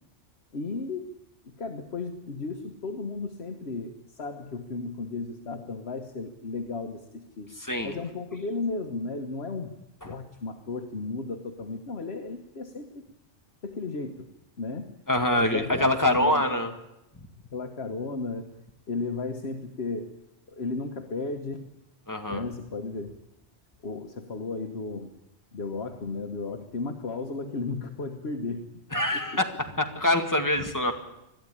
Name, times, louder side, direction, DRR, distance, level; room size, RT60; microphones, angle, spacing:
voice 1, 0.5-1.1 1.4-7.5 7.8-9.8 10.0-13.0 13.6-14.3 14.6-14.9 15.4-16.7 17.5-18.6 18.9-20.1 20.5-21.7 22.3-23.1 23.8-25.1 25.5-28.7 29.1-29.2, left 3 dB, 70° left, 5 dB, 1.5 m, -34 dB
voice 2, 7.6-7.9 10.0-10.1 15.1-16.7 22.1-22.4 28.9-30.9, left 1 dB, 15° left, 5 dB, 1.9 m, -25 dB
21.5 x 13.5 x 9.9 m, 0.89 s
omnidirectional pair, 1.1 m